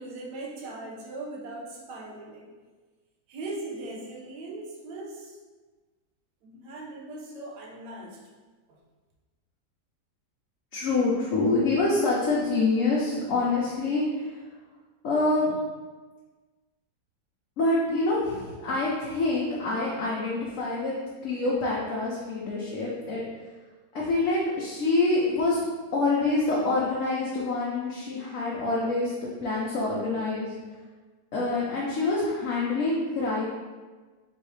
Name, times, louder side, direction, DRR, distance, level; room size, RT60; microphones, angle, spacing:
voice 1, 0.0-2.5 3.3-5.4 6.4-8.2 8.7-8.8, right 2 dB, 80° right, -3 dB, 1.4 m, -39 dB
voice 2, 10.7-14.4 15.0-15.5 17.6-20.9 21.2-23.2 23.9-25.6 25.9-30.5 31.3-33.4, left 2 dB, 60° left, -6 dB, 1.0 m, -26 dB
4.7 x 3.1 x 3.1 m, 1.3 s
omnidirectional pair, 1.8 m